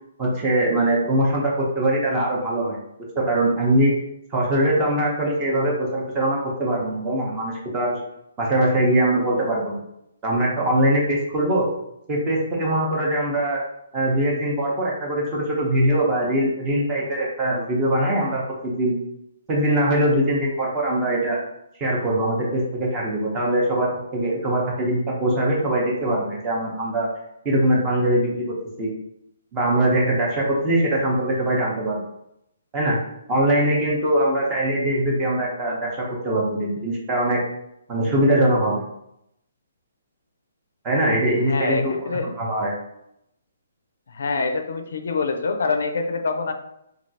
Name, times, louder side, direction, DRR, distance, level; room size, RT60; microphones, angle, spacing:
voice 1, 0.2-2.8 3.1-3.9 4.3-8.0 8.4-9.8 10.2-11.7 12.1-13.6 13.9-19.0 19.5-21.4 21.8-27.1 27.4-28.9 29.5-32.0 32.7-33.0 33.3-37.4 37.9-38.8 40.8-42.7, right 1 dB, 15° right, -3 dB, 0.6 m, -22 dB
voice 2, 41.5-42.3 44.1-46.5, left 4 dB, 75° left, 6 dB, 0.4 m, -25 dB
3.2 x 2.3 x 2.7 m, 0.79 s
hypercardioid pair, 170°, 0 cm